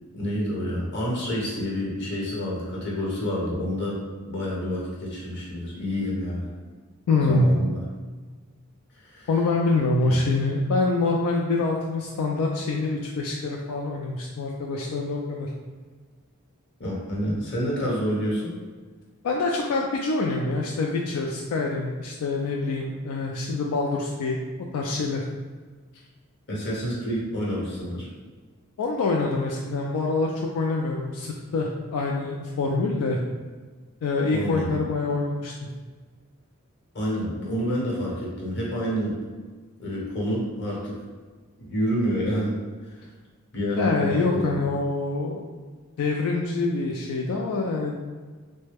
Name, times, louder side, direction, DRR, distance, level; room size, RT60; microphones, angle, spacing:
voice 1, 0.1-6.5 7.2-7.8 9.0-9.3 10.0-10.1 16.8-18.5 26.5-28.1 34.3-34.8 36.9-39.2 39.8-41.0 41.6-42.6 42.8-42.9 43.5-44.5, equal, 50° left, -4 dB, 0.9 m, -28 dB
voice 2, 7.1-7.5 9.3-15.5 19.2-24.4 24.7-25.2 28.8-33.2 34.0-35.7 43.8-45.4 46.0-48.0, left 3 dB, 85° left, -1 dB, 0.3 m, -25 dB
3.2 x 2.1 x 3.3 m, 1.4 s
head